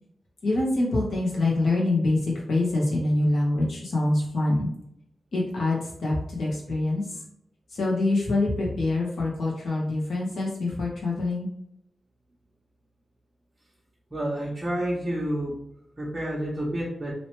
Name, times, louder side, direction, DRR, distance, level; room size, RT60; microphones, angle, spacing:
voice 1, 0.4-4.7 5.3-7.2 7.7-11.5, left 2 dB, 85° left, -3 dB, 1.3 m, -25 dB
voice 2, 14.1-15.5 16.0-17.1, right 1 dB, 20° right, -7 dB, 0.8 m, -29 dB
3.1 x 2.9 x 3.1 m, 0.76 s
wide cardioid pair, 165°, 0 cm